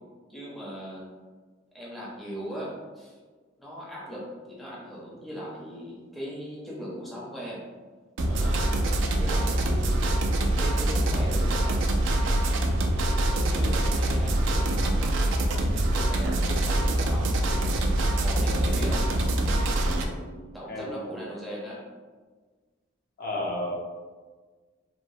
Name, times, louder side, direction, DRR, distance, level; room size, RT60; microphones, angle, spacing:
voice 1, 0.3-1.0 1.7-3.2 3.6-7.6 8.2-10.0 10.4-11.9 13.3-15.2 15.9-19.1 20.5-21.8, equal, ahead, -7 dB, 0.5 m, -39 dB
sound 1, 8.2-20.1, right 1 dB, 70° right, 0.3 m, -24 dB
voice 2, 23.2-23.7, left 1 dB, 50° left, -3 dB, 0.5 m, -32 dB
3.0 x 2.0 x 2.6 m, 1.4 s
head